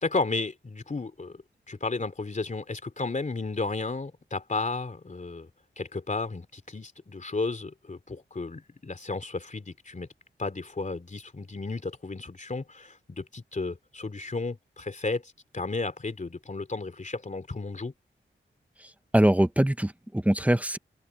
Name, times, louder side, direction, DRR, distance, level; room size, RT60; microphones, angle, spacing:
voice 1, 0.0-1.4 1.7-5.5 5.8-10.1 10.4-17.9, left 3 dB, 40° left, 3.2 m, -33 dB
voice 2, 18.8-20.8, right 1 dB, 5° right, 0.9 m, -23 dB
open air
wide cardioid pair, 90°, 20 cm